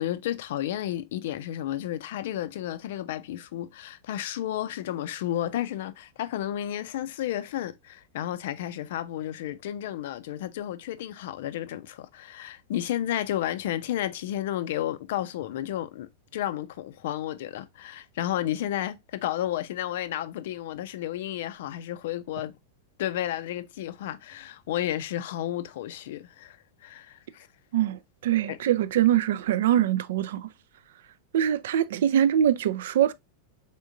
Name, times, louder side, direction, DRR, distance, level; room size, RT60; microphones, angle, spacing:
voice 1, 0.0-22.5 23.0-27.5 28.5-28.6, left 12 dB, 55° left, 0.4 m, -32 dB
voice 2, 27.7-30.5 31.3-33.1, right 10 dB, 55° right, 0.3 m, -23 dB
4.2 x 3.6 x 2.4 m
figure-of-eight pair, 90°, 0 cm